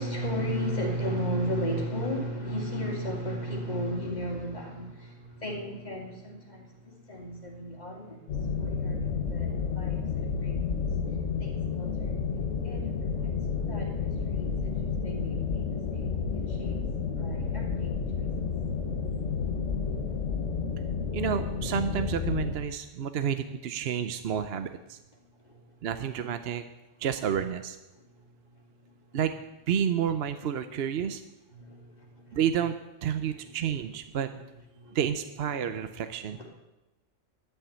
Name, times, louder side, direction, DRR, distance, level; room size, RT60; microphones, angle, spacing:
voice 1, 0.0-10.9 11.4-12.2 12.6-16.8 17.2-18.5 25.4-25.9 27.9-28.0 28.8-28.9 31.5-32.4 33.4-33.5 34.7-35.0 35.6-35.9 36.2-36.5, equal, 35° left, -1 dB, 2.6 m, -35 dB
sound 1, 8.3-22.6, left 5 dB, 70° left, 1.5 m, -31 dB
voice 2, 21.1-25.0 25.8-26.6 27.0-27.8 29.1-29.4 29.7-31.2 32.3-32.7 33.0-34.3 34.9-36.4, right 8 dB, 60° right, 9 dB, 0.8 m, -30 dB
11.5 x 6.9 x 8.7 m, 1.0 s
omnidirectional pair, 1.3 m